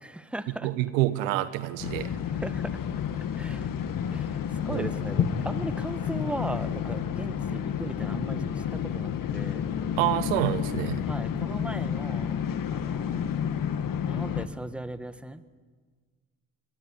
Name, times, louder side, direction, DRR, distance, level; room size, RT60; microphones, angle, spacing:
voice 1, 0.0-0.7 2.0-2.8 3.3-3.7 4.1-9.7 11.1-12.4 12.7-13.2 14.0-15.4, right 1 dB, 5° right, 11 dB, 1.4 m, -38 dB
voice 2, 0.6-2.1 4.7-4.9 10.0-11.0, right 15 dB, 90° right, 13 dB, 1.2 m, -27 dB
sound 1, 1.8-14.5, left 8 dB, 55° left, 1.9 m, -30 dB
23.0 x 19.5 x 9.8 m, 1.5 s
supercardioid pair, 65°, 39 cm